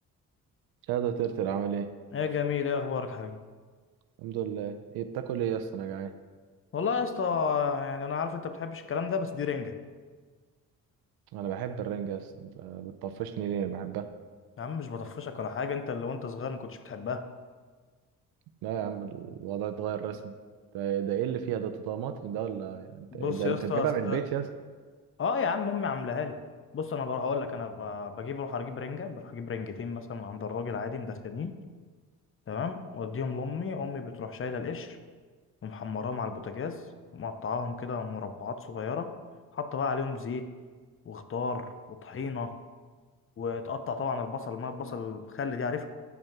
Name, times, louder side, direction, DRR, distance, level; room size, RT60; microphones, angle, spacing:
voice 1, 0.9-1.9 4.2-6.1 11.3-14.1 18.6-20.3 20.7-24.5, right 9 dB, 75° right, 9 dB, 0.6 m, -32 dB
voice 2, 2.1-3.4 6.7-9.7 14.6-17.3 23.1-24.2 25.2-26.4 26.7-31.6 32.5-35.0 35.6-36.8 37.1-39.2 39.5-40.5 41.0-42.5 43.4-45.9, left 5 dB, 35° left, 9 dB, 0.7 m, -33 dB
9.1 x 5.1 x 3.6 m, 1.5 s
supercardioid pair, 60°, 38 cm